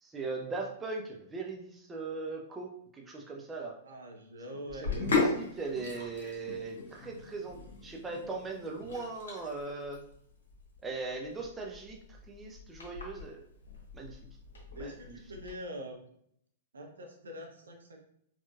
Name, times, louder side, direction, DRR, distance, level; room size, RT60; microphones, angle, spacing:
voice 1, 0.0-2.7 3.1-3.7 4.7-10.0 10.8-12.0 12.3-13.4 13.9-14.2 14.8-15.2, right 3 dB, 15° right, 0 dB, 0.6 m, -39 dB
voice 2, 3.8-5.1 5.7-5.8 14.7-16.0 16.7-18.0, equal, 70° right, 1 dB, 0.8 m, -44 dB
Sink (filling or washing), 4.7-15.5, left 3 dB, 65° left, 1.2 m, -37 dB
4.3 x 3.0 x 2.4 m, 0.69 s
figure-of-eight pair, 105°, 0 cm